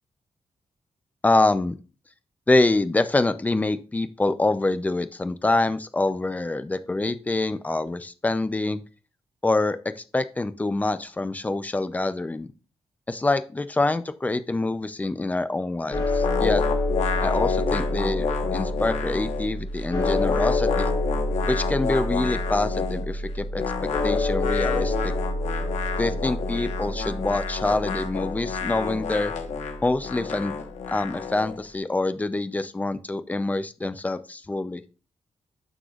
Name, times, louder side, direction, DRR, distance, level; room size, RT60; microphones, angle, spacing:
voice 1, 1.2-1.8 2.5-8.8 9.4-12.5 13.1-16.6 17.2-20.9 21.5-23.6 24.0-25.1 26.0-29.3 29.8-30.5 30.9-34.8, left 2 dB, 15° left, 11 dB, 0.5 m, -25 dB
sound 1, 15.9-30.1, left 2 dB, 45° left, 4.4 m, -28 dB
sound 2, 16.2-19.5 19.8-23.1 23.5-31.6, left 6 dB, 90° left, 1.2 m, -30 dB
9.9 x 6.7 x 2.4 m, 0.34 s
wide cardioid pair, 160°, 11 cm